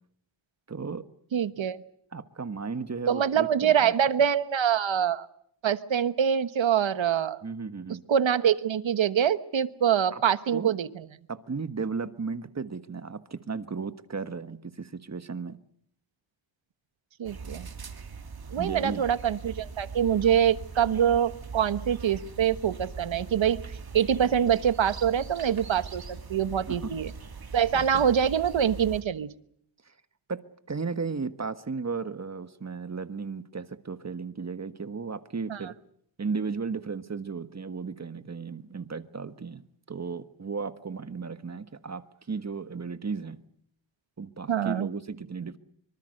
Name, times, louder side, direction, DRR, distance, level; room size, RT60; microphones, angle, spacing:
voice 1, 0.7-1.0 2.1-3.9 7.4-8.0 10.1-10.2 10.5-10.7 11.3-15.6 18.6-19.1 26.7-26.9 27.7-28.0 29.9-30.0 30.3-30.4 30.7-35.7 36.2-39.6 39.9-42.0 42.3-43.4 44.2-45.6, right 5 dB, 35° right, 11 dB, 1.5 m, -35 dB
voice 2, 1.3-1.8 3.1-5.3 5.6-7.4 8.1-11.1 17.2-17.7 18.5-23.6 23.9-26.0 26.3-27.1 27.5-29.3 35.5-35.6 44.5-44.9, right 8 dB, 90° right, 14 dB, 1.3 m, -25 dB
sound 1, 17.2-29.0, right 5 dB, 55° right, 2.9 m, -41 dB
25.0 x 24.5 x 6.6 m, 0.66 s
wide cardioid pair, 120°, 44 cm